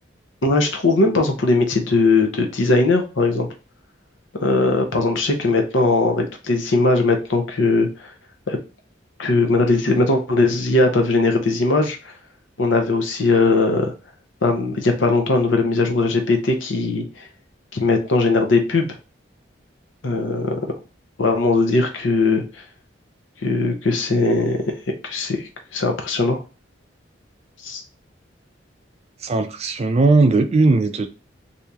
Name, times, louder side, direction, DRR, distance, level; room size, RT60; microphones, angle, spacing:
voice 1, 0.4-3.5 4.3-8.1 8.5-8.6 9.2-12.1 12.6-13.9 14.4-17.0 17.7-18.9 20.0-20.6 21.2-22.6 23.4-24.6 25.0-26.4 27.6-27.8, left 3 dB, 80° left, 4 dB, 0.8 m, -19 dB
voice 2, 29.2-31.1, right 3 dB, 35° right, 8 dB, 0.4 m, -17 dB
2.9 x 2.7 x 3.4 m, 0.32 s
head